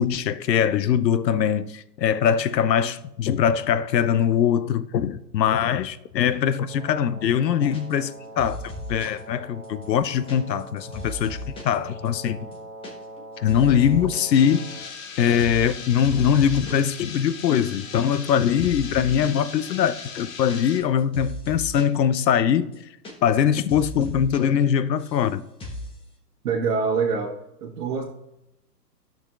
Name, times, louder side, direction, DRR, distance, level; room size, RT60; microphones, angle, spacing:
voice 1, 0.0-8.6 8.9-12.5 13.4-14.7 15.2-22.8 23.2-25.4, left 8 dB, 80° left, 0.7 m, -22 dB
Wind instrument woodwind instrument, 6.6-14.9, right 1 dB, 15° right, 1.5 m, -42 dB
sound 1, 7.7-8.1 8.4-9.2 9.6-11.8 12.0-12.1 12.4-12.9 13.2-14.2 14.4-15.1 15.4-15.7 16.0-16.9 17.2-17.3 17.5-18.3 18.6-19.4 19.8-22.0 22.3-22.4 22.6-23.4 23.7-24.4 24.7-25.3 25.6-25.9, left 1 dB, 10° left, 0.9 m, -37 dB
sound 2, 14.3-20.8, left 5 dB, 50° left, 1.1 m, -39 dB
voice 2, 26.4-28.0, right 5 dB, 60° right, 1.3 m, -25 dB
11.5 x 6.3 x 2.4 m
hypercardioid pair, 125°, 50 cm